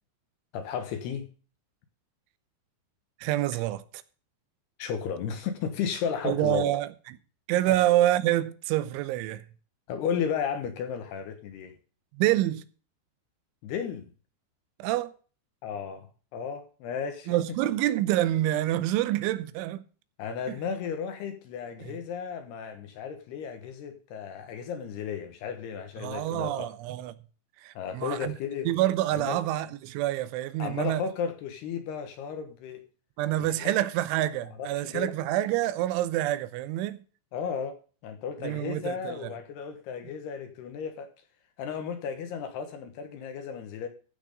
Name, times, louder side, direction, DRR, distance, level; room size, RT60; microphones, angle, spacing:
voice 1, 0.5-1.3 4.8-6.7 7.7-7.8 9.9-11.7 13.6-14.1 15.6-17.3 20.2-26.7 27.8-28.7 29.1-29.4 30.6-32.8 33.4-33.7 34.6-35.1 37.3-37.8 38.0-41.1 41.6-43.9, left 7 dB, 70° left, 2.9 m, -34 dB
voice 2, 3.2-3.8 6.2-7.2 7.5-9.4 12.2-12.6 14.8-15.1 17.3-19.8 20.5-20.6 21.8-22.0 26.0-27.2 27.6-28.4 28.7-31.0 33.2-37.0 38.4-39.3, right 14 dB, 85° right, 3.1 m, -27 dB
15.5 x 6.2 x 5.1 m
omnidirectional pair, 5.5 m